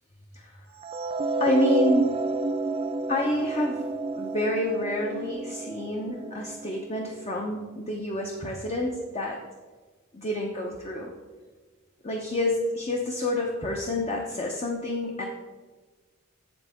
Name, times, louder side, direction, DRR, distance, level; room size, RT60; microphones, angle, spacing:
sound 1, 0.8-7.1, right 2 dB, 25° right, 0.3 m, -29 dB
voice 1, 1.4-2.2 3.1-3.9 4.1-9.4 10.1-11.1 12.0-15.2, left 1 dB, 30° left, 0 dB, 0.7 m, -28 dB
8.0 x 7.4 x 3.5 m, 1.3 s
head